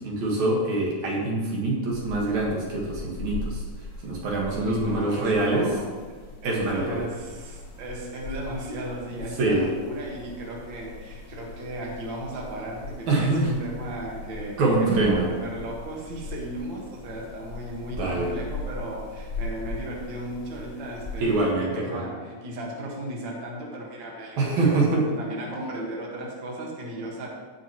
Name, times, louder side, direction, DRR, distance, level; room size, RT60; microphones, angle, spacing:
voice 1, 0.0-3.6 4.0-5.7 6.4-6.8 9.4-9.6 13.1-13.5 14.6-15.2 17.9-18.3 21.2-22.1 24.4-25.0, right 2 dB, 70° right, -2 dB, 2.9 m, -24 dB
sound 1, 1.9-21.5, left 2 dB, 25° left, 0.8 m, -39 dB
voice 2, 4.5-27.3, right 1 dB, 45° right, -2 dB, 1.9 m, -36 dB
16.0 x 6.2 x 3.0 m, 1.4 s
omnidirectional pair, 3.5 m